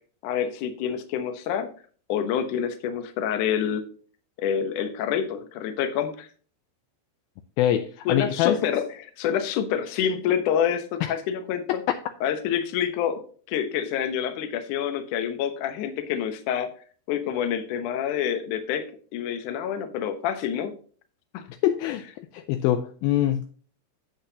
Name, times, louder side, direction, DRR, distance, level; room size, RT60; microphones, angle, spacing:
voice 1, 0.2-1.7 2.1-3.8 4.4-6.3 8.1-11.8 12.2-13.2 13.5-16.7 17.1-18.8 19.1-20.7 21.3-21.4, left 8 dB, 70° left, 2.1 m, -27 dB
voice 2, 7.6-8.6 11.0-11.1 21.6-23.5, left 12 dB, 85° left, 2.1 m, -24 dB
10.0 x 8.0 x 2.8 m
omnidirectional pair, 4.8 m